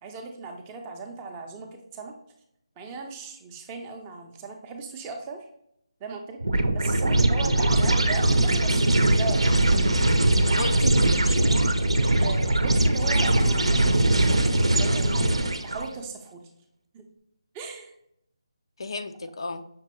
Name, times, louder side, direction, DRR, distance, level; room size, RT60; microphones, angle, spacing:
voice 1, 0.0-2.2 2.8-5.5 6.0-6.4 6.7-9.9 12.2-15.2 15.6-16.4 16.9-17.0 17.5-17.9, right 4 dB, 15° right, 3 dB, 0.5 m, -37 dB
sound 1, 6.4-15.9, right 1 dB, 85° right, 0.6 m, -21 dB
voice 2, 10.4-11.5 18.8-19.7, left 3 dB, 60° left, 9 dB, 0.4 m, -34 dB
5.9 x 2.7 x 3.0 m, 0.76 s
figure-of-eight pair, 160°, 3 cm